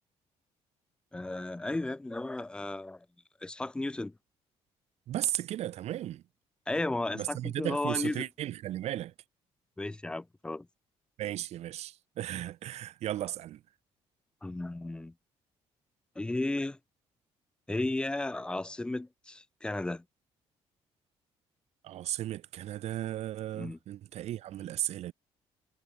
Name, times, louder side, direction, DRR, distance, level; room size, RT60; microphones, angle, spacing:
voice 1, 1.1-3.1 3.4-4.1 6.7-8.3 9.8-10.7 14.4-15.1 16.2-16.8 17.7-20.0 23.5-23.8, left 2 dB, 10° left, 0.3 m, -34 dB
voice 2, 5.1-6.2 7.1-9.1 11.2-13.6 21.8-25.1, right 13 dB, 65° right, 0.8 m, -35 dB
cardioid pair, 115°, 12 cm